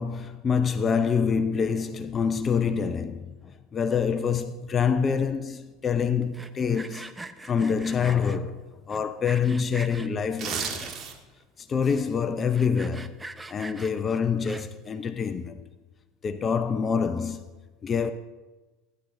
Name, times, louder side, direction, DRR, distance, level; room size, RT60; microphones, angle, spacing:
voice 1, 0.0-7.1 7.4-8.6 8.9-11.0 11.6-13.2 13.5-15.7 16.2-17.4 17.8-18.1, left 6 dB, 30° left, 0.6 m, -26 dB
Sawing, 6.2-8.4 8.9-10.1 10.6-11.2 11.6-11.7 11.9-12.0 12.4-14.9, right 2 dB, 10° right, 0.6 m, -42 dB
sound 1, 10.2-11.4 11.8-12.0, right 6 dB, 45° right, 1.5 m, -33 dB
15.5 x 10.5 x 2.6 m
hypercardioid pair, 85°, 0 cm